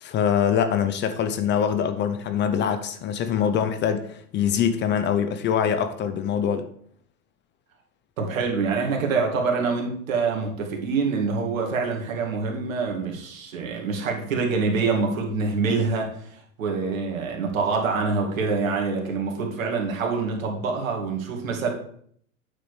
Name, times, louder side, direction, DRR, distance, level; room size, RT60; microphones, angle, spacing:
voice 1, 0.0-6.7, left 8 dB, 25° left, 10 dB, 0.6 m, -24 dB
voice 2, 8.2-21.7, right 4 dB, 75° right, 1 dB, 2.2 m, -26 dB
8.7 x 6.8 x 3.3 m, 0.62 s
hypercardioid pair, 105°, 41 cm